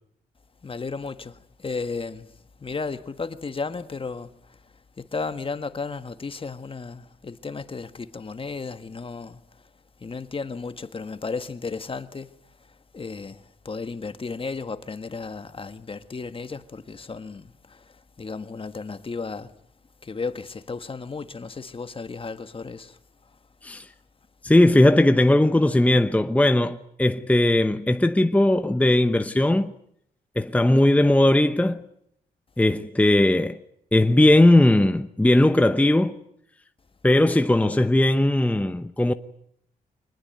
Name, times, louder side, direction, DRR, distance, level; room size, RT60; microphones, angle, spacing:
voice 1, 0.6-9.7 10.0-19.6 20.0-23.0, left 4 dB, 35° left, 1.5 m, -34 dB
voice 2, 24.4-29.7 30.4-31.8 32.6-33.6 33.9-36.1 37.0-39.1, left 1 dB, 10° left, 0.9 m, -18 dB
24.5 x 20.0 x 9.2 m
cardioid pair, 70°, 16 cm